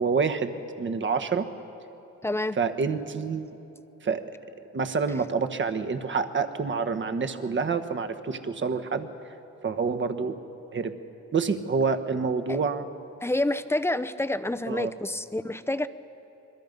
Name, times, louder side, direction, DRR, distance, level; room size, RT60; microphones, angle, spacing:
voice 1, 0.0-1.5 2.6-3.5 4.0-4.2 4.7-9.1 9.6-10.4 10.7-10.9 11.3-12.8 14.7-14.9, right 5 dB, 40° right, 9 dB, 1.3 m, -27 dB
voice 2, 2.2-2.6 12.5-12.6 13.2-15.9, left 1 dB, 10° left, 11 dB, 0.7 m, -28 dB
26.5 x 21.5 x 5.3 m, 2.9 s
cardioid pair, 90°, 30 cm